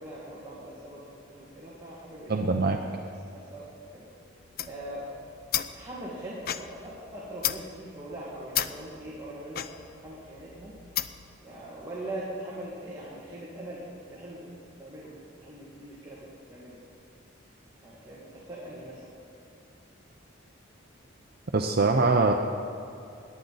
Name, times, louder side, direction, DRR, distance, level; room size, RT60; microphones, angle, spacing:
voice 1, 0.0-2.4 3.0-3.6 3.9-4.0 4.7-5.1 5.7-10.8 11.4-13.8 14.1-14.5 14.8-16.8 17.8-19.1, right 1 dB, 20° right, -7 dB, 1.8 m, -41 dB
voice 2, 2.3-2.8 21.5-22.3, right 3 dB, 50° right, 2 dB, 0.6 m, -23 dB
sound 1, 4.4-11.4, left 11 dB, 50° left, 0.4 m, -35 dB
18.0 x 10.5 x 4.1 m, 2.8 s
head